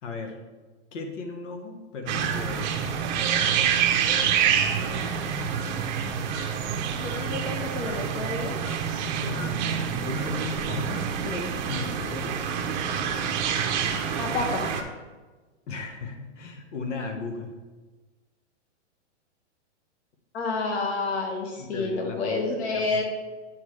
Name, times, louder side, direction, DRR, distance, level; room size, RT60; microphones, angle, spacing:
voice 1, 0.0-0.4 0.9-2.8 9.2-12.4 15.7-17.5 21.6-23.0, left 3 dB, 80° left, 5 dB, 1.4 m, -36 dB
sound 1, 2.1-14.8, right 7 dB, 40° right, 0.7 m, -27 dB
voice 2, 7.0-8.6 14.1-14.7 20.3-23.0, left 3 dB, 60° left, 2 dB, 1.7 m, -29 dB
8.6 x 5.9 x 3.2 m, 1.3 s
hypercardioid pair, 155°, 36 cm